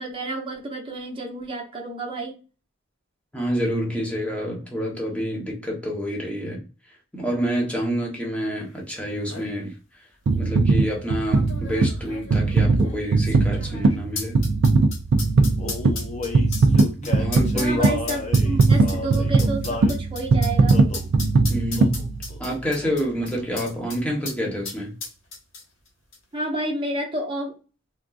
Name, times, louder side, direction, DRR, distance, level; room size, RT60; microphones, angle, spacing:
voice 1, 0.0-2.3 17.5-20.8 26.3-27.5, right 2 dB, 25° right, 0.9 m, -30 dB
voice 2, 3.3-6.6 7.1-9.7 10.3-14.4 17.0-17.8 21.5-22.0 22.4-24.9, equal, 5° left, 1.0 m, -28 dB
sound 1, 8.8-8.9 9.1-9.5 10.3-10.4 11.3-24.0 24.3-24.4 24.6-25.9 26.1-26.2, left 4 dB, 80° left, 1.2 m, -36 dB
sound 2, 10.3-22.7 23.2-23.3, right 3 dB, 60° right, 0.4 m, -20 dB
Male singing, 15.6-20.0 20.7-21.1 21.8-22.0 22.3-23.3, left 3 dB, 35° left, 0.6 m, -33 dB
3.7 x 2.4 x 2.3 m
head